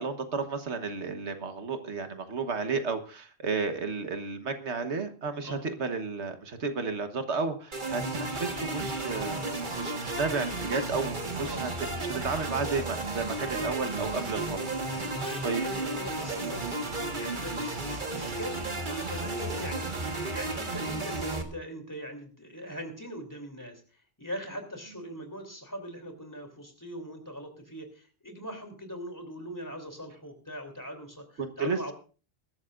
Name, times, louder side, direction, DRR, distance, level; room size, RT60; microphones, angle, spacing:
voice 1, 0.0-9.4 9.7-11.7 12.0-15.6 31.4-31.9, right 4 dB, 80° right, 8 dB, 1.6 m, -32 dB
sound 1, 7.7-21.4, right 2 dB, 45° right, 1.7 m, -33 dB
voice 2, 14.9-23.8 24.2-31.9, equal, 15° left, 5 dB, 3.1 m, -41 dB
22.0 x 12.5 x 2.5 m, 0.36 s
omnidirectional pair, 1.1 m